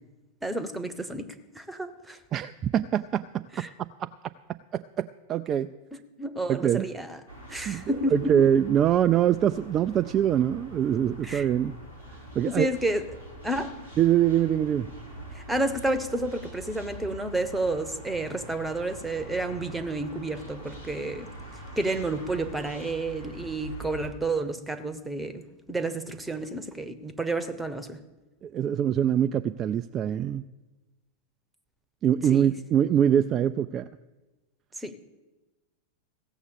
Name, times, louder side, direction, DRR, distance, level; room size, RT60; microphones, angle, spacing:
voice 1, 0.4-2.2 3.5-3.7 5.9-7.2 7.5-8.5 11.2-11.5 12.4-13.1 13.4-13.8 15.3-21.3 21.8-28.0 32.3-32.5 34.8-34.9, right 2 dB, 5° right, 0.9 m, -30 dB
voice 2, 2.3-4.1 4.5-5.7 6.5-6.9 7.7-7.8 8.1-11.7 12.4-12.7 14.0-14.9 28.4-30.4 32.0-33.8, right 10 dB, 30° right, 0.3 m, -24 dB
sound 1, 7.3-24.1, right 1 dB, 90° left, 3.0 m, -44 dB
16.0 x 7.1 x 6.9 m
figure-of-eight pair, 90°, 0 cm